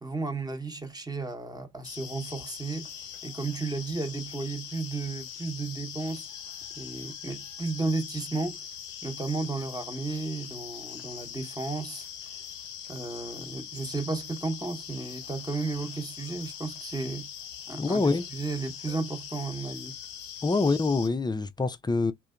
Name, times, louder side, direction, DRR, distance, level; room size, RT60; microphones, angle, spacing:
voice 1, 0.0-2.9 3.2-6.3 6.8-8.6 9.0-12.1 12.9-17.3 17.7-20.0, right 3 dB, 10° right, 0.9 m, -33 dB
sound 1, 1.8-21.1, left 9 dB, 90° left, 0.6 m, -42 dB
voice 2, 17.8-18.2 20.4-22.1, left 3 dB, 15° left, 0.4 m, -25 dB
2.6 x 2.2 x 2.3 m
hypercardioid pair, 50°, 35 cm